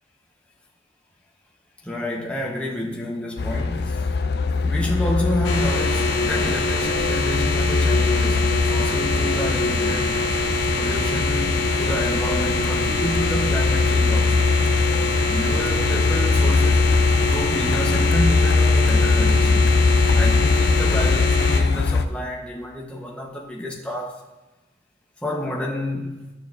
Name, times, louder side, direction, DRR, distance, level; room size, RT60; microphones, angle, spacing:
voice 1, 1.8-4.2 4.5-10.2 10.7-14.5 15.3-16.9 17.3-19.8 20.1-24.2 25.2-26.1, equal, 5° left, -2 dB, 1.0 m, -29 dB
Truck, 3.4-22.1, left 4 dB, 55° left, 0.4 m, -21 dB
sound 1, 5.4-21.6, left 2 dB, 85° left, 0.9 m, -24 dB
13.5 x 6.6 x 2.6 m, 1.1 s
head